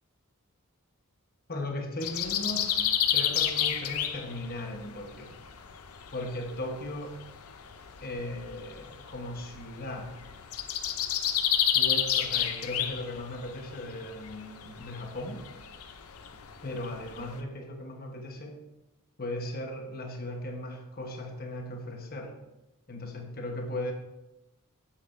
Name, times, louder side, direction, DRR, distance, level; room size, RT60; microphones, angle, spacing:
voice 1, 1.5-2.8 3.1-5.3 6.1-7.2 8.0-10.2 11.7-15.5 16.6-18.6 19.2-22.4 22.9-23.9, left 1 dB, 45° left, 3 dB, 1.1 m, -37 dB
sound 1, 2.0-17.4, left 10 dB, 75° left, 0.6 m, -31 dB
8.4 x 8.2 x 2.6 m, 0.94 s
head